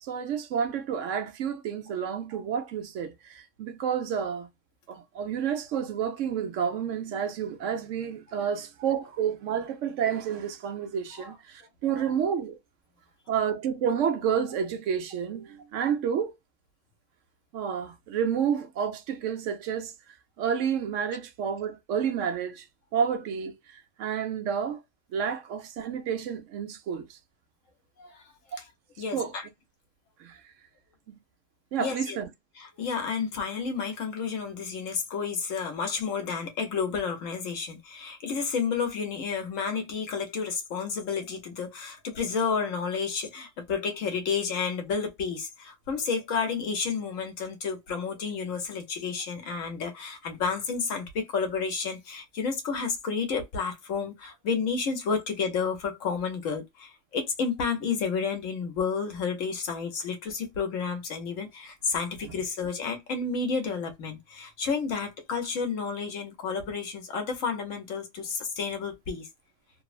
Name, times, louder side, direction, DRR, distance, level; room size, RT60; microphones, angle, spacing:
voice 1, 0.0-4.5 4.9-12.6 13.3-16.3 17.5-19.9 20.4-22.7 22.9-24.8 25.1-27.2 29.1-29.3 30.2-30.4 31.1-31.2 31.7-32.3, right 7 dB, 75° right, 1.0 m, -30 dB
voice 2, 29.0-29.5 31.8-32.2 32.6-69.3, left 5 dB, 90° left, 1.3 m, -31 dB
3.1 x 2.1 x 2.4 m
omnidirectional pair, 1.3 m